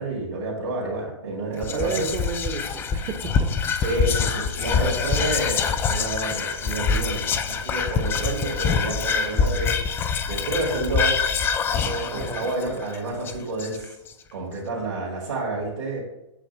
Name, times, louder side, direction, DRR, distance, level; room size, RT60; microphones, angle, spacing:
voice 1, 0.0-2.1 3.8-10.0 10.3-11.3 11.7-14.0 14.3-16.0, right 2 dB, 75° right, -5 dB, 2.3 m, -29 dB
Whispering, 1.6-14.1, left 6 dB, 15° left, 0.3 m, -25 dB
voice 2, 1.6-3.8 12.1-12.5, right 5 dB, 25° right, 4 dB, 0.7 m, -32 dB
8.3 x 3.2 x 5.5 m, 0.89 s
hypercardioid pair, 135°, 16 cm